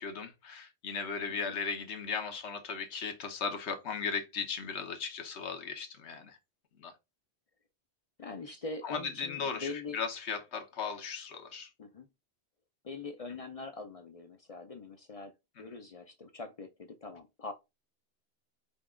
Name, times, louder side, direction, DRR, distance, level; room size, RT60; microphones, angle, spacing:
voice 1, 0.0-6.4 6.8-6.9 8.8-11.7, left 5 dB, 80° left, 1.2 m, -37 dB
voice 2, 8.2-10.0 11.8-12.1 12.8-15.3 15.6-17.5, left 3 dB, 45° left, 0.5 m, -43 dB
5.2 x 2.3 x 3.6 m
omnidirectional pair, 1.1 m